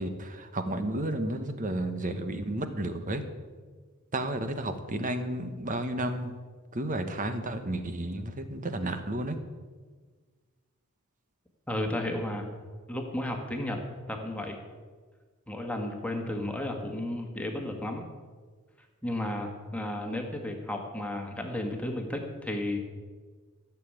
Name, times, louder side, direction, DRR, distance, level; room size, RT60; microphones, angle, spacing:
voice 1, 0.0-3.2 4.1-6.3 6.7-9.4, right 1 dB, 35° right, 8 dB, 1.2 m, -32 dB
voice 2, 11.7-12.5 12.9-13.8 14.1-14.6 15.5-18.0 19.0-22.8, left 1 dB, 5° left, 2 dB, 1.8 m, -33 dB
15.5 x 7.1 x 8.8 m, 1.5 s
head